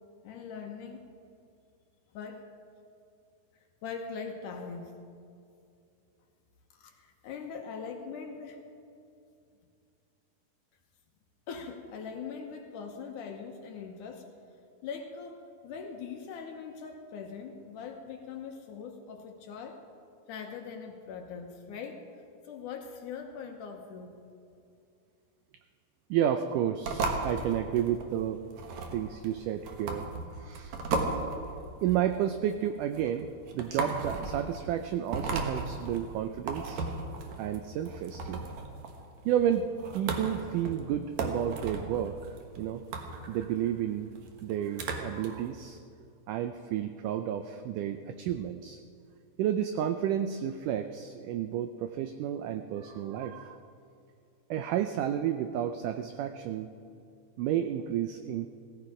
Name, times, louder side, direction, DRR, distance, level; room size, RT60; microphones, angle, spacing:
voice 1, 0.2-1.0 2.1-2.5 3.8-4.9 6.7-8.6 11.5-14.3 14.8-19.8 20.3-22.0 22.4-24.1, left 6 dB, 70° left, 4 dB, 2.2 m, -41 dB
voice 2, 26.1-28.4 28.9-30.1 30.3-30.8 31.8-33.3 33.5-36.8 37.4-38.5 39.3-39.7 39.9-42.8 43.3-44.1 44.4-45.8 46.3-48.8 49.4-53.6 54.5-56.7 57.4-58.5, right 10 dB, 85° right, 8 dB, 1.8 m, -31 dB
sound 1, 26.8-45.3, right 3 dB, 60° right, 2.3 m, -36 dB
16.5 x 16.0 x 4.9 m, 2.5 s
omnidirectional pair, 4.3 m